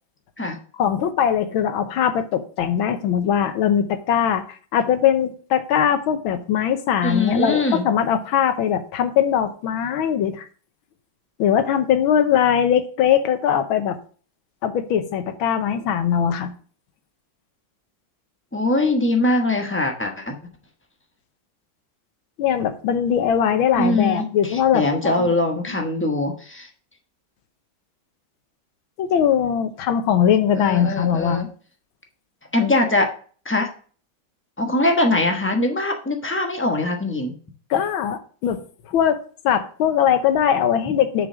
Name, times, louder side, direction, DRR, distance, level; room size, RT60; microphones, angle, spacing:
voice 1, 0.8-10.5 11.4-14.0 14.6-16.5 22.4-25.3 25.7-25.8 29.0-31.4 37.7-38.6 38.9-39.2 39.4-41.3, left 9 dB, 85° left, 9 dB, 1.7 m, -21 dB
voice 2, 7.0-7.9 18.5-20.4 23.8-26.7 30.5-31.5 32.5-33.1 33.4-33.7 34.6-37.3, left 2 dB, 10° left, 3 dB, 0.7 m, -22 dB
6.8 x 5.2 x 6.2 m, 0.42 s
omnidirectional pair, 2.2 m